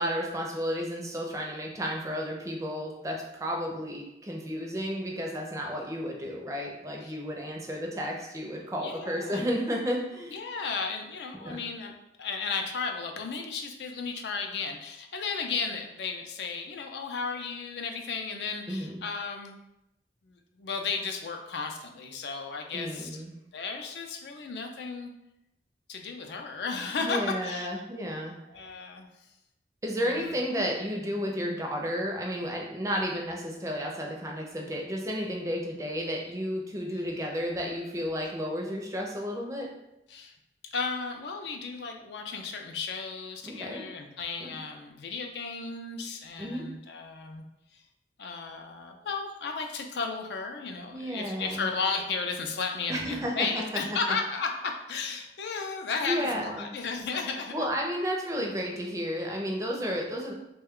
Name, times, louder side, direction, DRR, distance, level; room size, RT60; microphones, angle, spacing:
voice 1, 0.0-10.5 11.4-11.6 18.7-18.9 22.7-23.3 27.0-28.3 29.8-39.7 43.4-43.8 44.4-44.5 46.4-46.7 50.9-51.7 52.9-54.0 56.0-56.7 57.5-60.3, equal, 20° right, 0 dB, 0.4 m, -32 dB
voice 2, 8.8-9.4 10.3-19.6 20.3-23.2 23.5-25.1 25.9-27.7 28.5-29.1 30.0-30.3 40.1-40.3 40.7-47.4 47.7-47.8 48.2-57.6, left 4 dB, 75° left, 4 dB, 0.4 m, -34 dB
3.1 x 2.2 x 3.6 m, 0.86 s
head